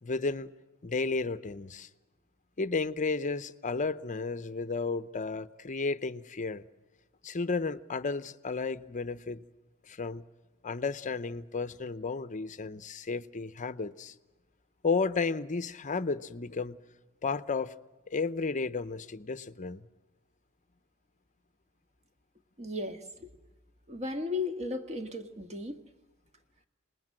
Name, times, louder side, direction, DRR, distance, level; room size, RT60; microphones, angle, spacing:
voice 1, 0.0-0.5 0.8-1.9 2.6-6.6 7.2-9.4 9.8-10.2 10.6-14.1 14.8-16.8 17.2-17.7 18.1-19.9, left 4 dB, 35° left, 0.7 m, -33 dB
voice 2, 22.6-23.3 23.9-25.8, left 2 dB, 30° right, 1.7 m, -35 dB
27.0 x 20.5 x 7.7 m
head